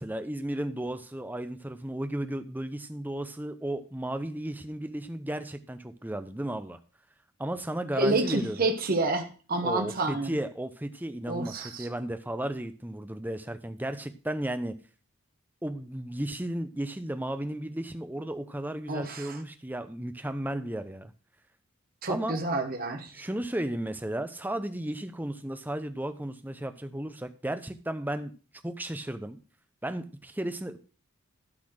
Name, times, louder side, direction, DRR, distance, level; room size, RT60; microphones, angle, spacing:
voice 1, 0.0-6.8 7.4-8.7 9.6-14.8 15.6-21.1 22.1-22.4 23.1-28.3 28.6-29.4 29.8-30.8, right 1 dB, 10° right, 9 dB, 0.6 m, -34 dB
voice 2, 8.0-10.4 11.3-11.9 18.9-19.4 22.0-23.1, right 2 dB, 40° right, 4 dB, 1.2 m, -29 dB
12.0 x 4.2 x 6.4 m, 0.38 s
head